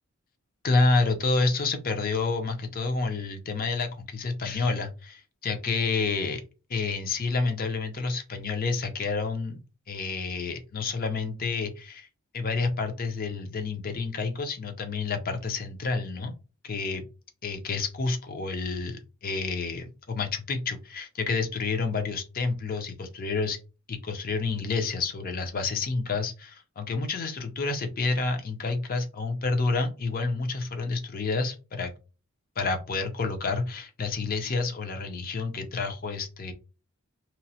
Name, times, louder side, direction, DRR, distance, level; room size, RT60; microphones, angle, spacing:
voice 1, 0.6-6.4 6.7-9.6 9.9-12.1 12.3-16.3 16.6-17.0 17.4-23.6 23.9-31.9 32.6-36.5, left 3 dB, 45° left, 6 dB, 0.5 m, -29 dB
2.9 x 2.0 x 2.8 m, 0.31 s
head